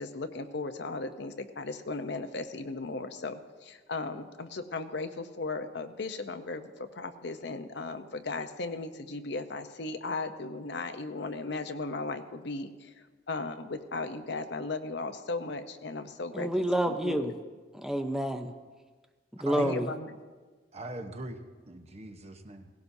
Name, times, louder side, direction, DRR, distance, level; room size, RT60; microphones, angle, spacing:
voice 1, 0.0-12.9 13.3-16.5 16.9-17.3 19.6-20.1, left 3 dB, 65° left, 8 dB, 0.7 m, -36 dB
voice 2, 16.3-17.3 17.7-18.5 19.4-19.9, right 1 dB, 5° right, 7 dB, 0.6 m, -28 dB
voice 3, 19.4-19.8 20.7-22.7, right 1 dB, 35° right, 6 dB, 0.9 m, -41 dB
17.5 x 16.5 x 2.7 m, 1.4 s
head